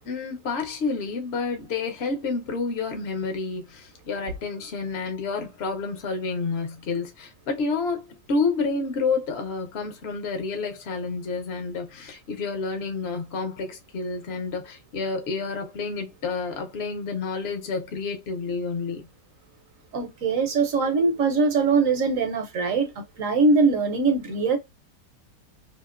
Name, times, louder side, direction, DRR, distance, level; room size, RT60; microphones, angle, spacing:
voice 1, 0.1-19.1, left 4 dB, 50° left, 0.8 m, -29 dB
voice 2, 19.9-24.6, right 4 dB, 60° right, 1.0 m, -22 dB
2.8 x 2.8 x 2.4 m
omnidirectional pair, 1.9 m